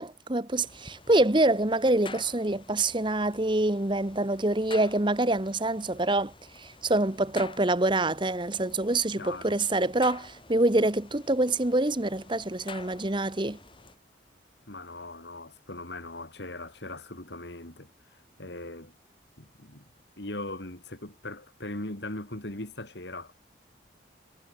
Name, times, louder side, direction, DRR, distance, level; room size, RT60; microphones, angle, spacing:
voice 1, 0.0-13.6, right 2 dB, 25° right, 1.1 m, -26 dB
sound 1, 0.5-14.0, left 4 dB, 25° left, 3.9 m, -49 dB
voice 2, 9.2-9.6 14.7-17.9 18.4-18.9 19.4-19.8 20.2-23.3, left 2 dB, 65° left, 3.4 m, -39 dB
head